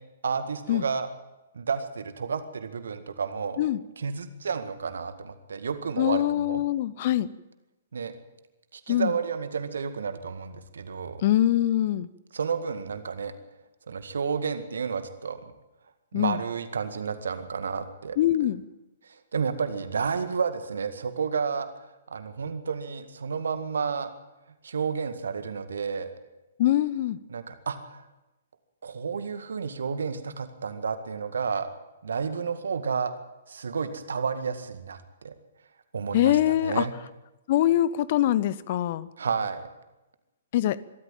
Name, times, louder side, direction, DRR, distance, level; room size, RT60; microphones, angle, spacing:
voice 1, 0.2-1.1 1.5-3.6 4.0-6.6 7.9-8.1 8.7-11.2 12.3-13.3 13.9-15.4 16.1-18.2 19.0-21.7 22.1-24.1 24.6-26.1 27.3-28.0 28.8-31.7 32.0-33.1 33.5-35.3 35.9-36.9 39.2-39.7, right 5 dB, 65° right, 10 dB, 2.0 m, -31 dB
voice 2, 6.0-7.3 8.9-9.1 11.2-12.1 16.1-16.4 18.2-18.6 26.6-27.2 36.1-36.9 37.5-39.1 40.5-40.8, left 13 dB, 40° left, 20 dB, 0.8 m, -23 dB
23.5 x 13.5 x 9.0 m, 1.0 s
figure-of-eight pair, 120°, 0 cm